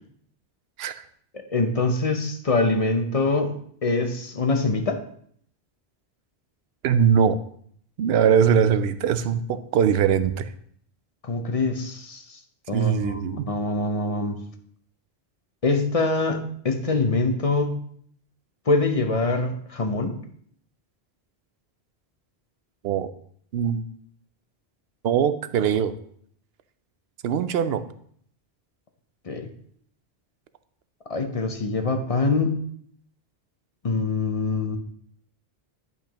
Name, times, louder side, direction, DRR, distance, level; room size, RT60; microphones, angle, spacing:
voice 1, 1.3-3.6 3.8-5.0 11.2-12.4 12.7-14.4 15.6-17.8 18.7-20.1 29.3-29.5 31.1-32.5 33.8-34.8, left 3 dB, 40° left, 5 dB, 0.7 m, -24 dB
voice 2, 6.8-7.4 8.0-10.5 12.7-13.5 22.8-23.1 23.5-23.8 25.0-25.9 27.2-27.8, right 7 dB, 75° right, 12 dB, 0.8 m, -21 dB
10.5 x 5.4 x 2.9 m, 0.63 s
omnidirectional pair, 1.1 m